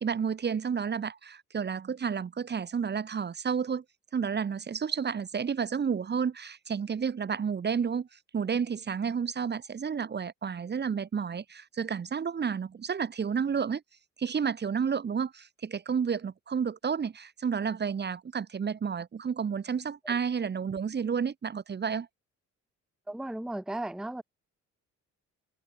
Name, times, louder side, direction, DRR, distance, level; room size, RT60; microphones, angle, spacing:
voice 1, 0.0-3.8 4.1-8.1 8.3-13.8 14.2-22.1, right 6 dB, 35° right, 1.1 m, -31 dB
voice 2, 23.1-24.2, right 1 dB, ahead, 0.8 m, -35 dB
cardioid pair, 90°, 30 cm